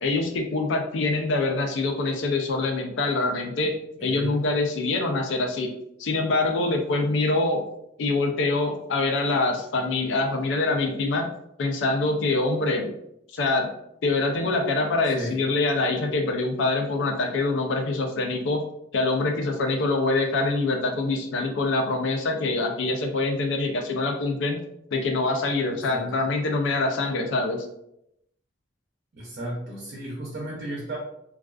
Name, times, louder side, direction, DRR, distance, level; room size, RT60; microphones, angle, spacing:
voice 1, 0.0-5.7 6.0-7.6 8.0-11.3 11.6-12.9 13.3-13.7 14.0-18.6 18.9-24.6 24.9-27.7, left 3 dB, 70° left, 3 dB, 0.4 m, -25 dB
voice 2, 4.0-4.3 15.1-15.4 25.9-26.1 29.1-31.0, right 1 dB, 50° right, -4 dB, 0.6 m, -34 dB
2.3 x 2.3 x 2.3 m, 0.78 s
head